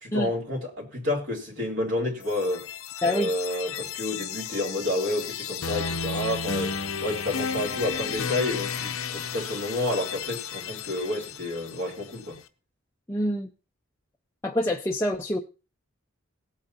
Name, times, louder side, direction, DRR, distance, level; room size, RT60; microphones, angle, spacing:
voice 1, 0.0-2.6 3.0-6.7 7.0-12.4, left 1 dB, 60° right, -1 dB, 2.7 m, -30 dB
sound 1, 2.2-12.1, left 6 dB, 75° left, 0.8 m, -33 dB
voice 2, 13.1-13.5 14.4-15.4, left 1 dB, 10° left, 0 dB, 0.5 m, -26 dB
18.0 x 8.6 x 2.9 m, 0.31 s
head